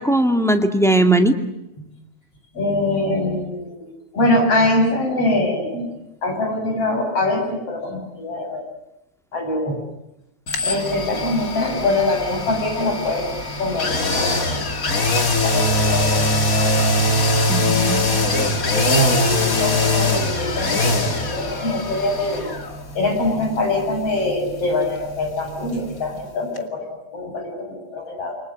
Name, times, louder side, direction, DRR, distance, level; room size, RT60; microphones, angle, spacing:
voice 1, 0.0-1.4 17.5-18.5, right 1 dB, ahead, 6 dB, 1.8 m, -19 dB
voice 2, 2.5-3.9 4.1-5.9 6.2-8.7 9.3-9.8 10.6-13.3 13.6-14.7 15.4-16.3 18.3-22.5 23.0-28.4, left 2 dB, 50° left, 4 dB, 8.6 m, -23 dB
sound 1, 10.5-26.3 26.6-26.7, left 1 dB, 30° left, 2.6 m, -22 dB
29.0 x 25.0 x 7.8 m, 0.88 s
omnidirectional pair, 3.4 m